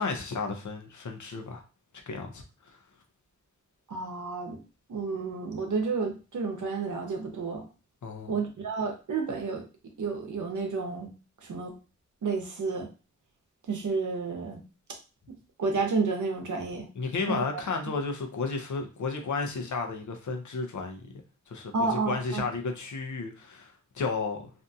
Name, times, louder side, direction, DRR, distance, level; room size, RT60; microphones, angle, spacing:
voice 1, 0.0-1.6 2.1-2.8 8.0-8.4 17.0-21.1 21.5-24.5, left 4 dB, 75° left, 0.6 m, -33 dB
voice 2, 3.9-4.6 4.9-7.7 8.3-9.6 10.0-11.1 11.4-11.7 12.2-12.9 13.7-14.6 15.6-16.9 17.3-17.6 21.7-22.4, right 4 dB, 80° right, 0.7 m, -31 dB
2.6 x 2.3 x 2.6 m
wide cardioid pair, 110°, 30 cm